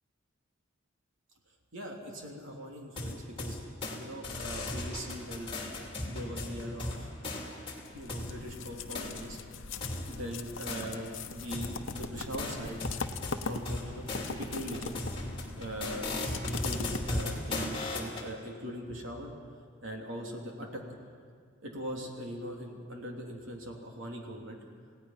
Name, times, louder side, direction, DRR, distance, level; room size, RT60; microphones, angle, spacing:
voice 1, 1.7-3.6 4.0-5.5 6.1-7.1 7.9-9.4 10.1-12.8 13.4-15.0 15.5-16.1 16.4-19.3 19.8-20.8 21.6-24.6, equal, 65° right, 0 dB, 3.1 m, -41 dB
sound 1, 3.0-4.0 4.2-8.3 8.9-9.1 9.8-11.2 11.5-18.3, left 2 dB, 25° left, 2.8 m, -37 dB
sound 2, 7.9-17.6, left 4 dB, 60° left, 0.9 m, -41 dB
28.0 x 17.0 x 5.8 m, 2.1 s
head